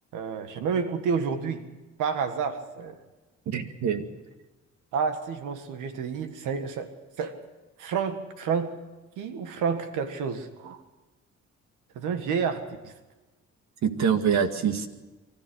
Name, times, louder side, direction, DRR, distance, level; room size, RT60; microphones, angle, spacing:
voice 1, 0.1-1.7 2.0-3.0 4.9-6.9 7.2-7.4 7.8-8.8 9.2-10.8 12.0-12.9, right 6 dB, 90° right, 8 dB, 1.7 m, -29 dB
voice 2, 3.5-4.1 13.8-14.9, right 7 dB, 65° right, 7 dB, 2.1 m, -25 dB
24.5 x 14.0 x 7.9 m, 1.2 s
cardioid pair, 90°, 30 cm